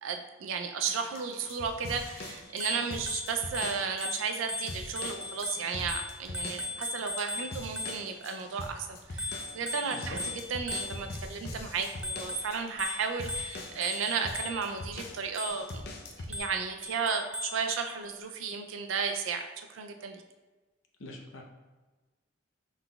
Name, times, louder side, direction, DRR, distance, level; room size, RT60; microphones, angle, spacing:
voice 1, 0.0-10.2 10.5-15.7 16.2-20.2, right 5 dB, 85° right, 5 dB, 0.4 m, -34 dB
sound 1, 0.9-16.4, left 2 dB, 50° left, 0.5 m, -43 dB
Bicycle bell, 2.5-8.3 9.2-11.3 11.8-14.8 15.4-15.8 16.3-17.7, left 2 dB, 5° right, 0.3 m, -38 dB
voice 2, 9.9-10.2 21.0-21.4, left 2 dB, 90° left, 1 dB, 0.7 m, -43 dB
5.5 x 3.9 x 2.3 m, 1.2 s
head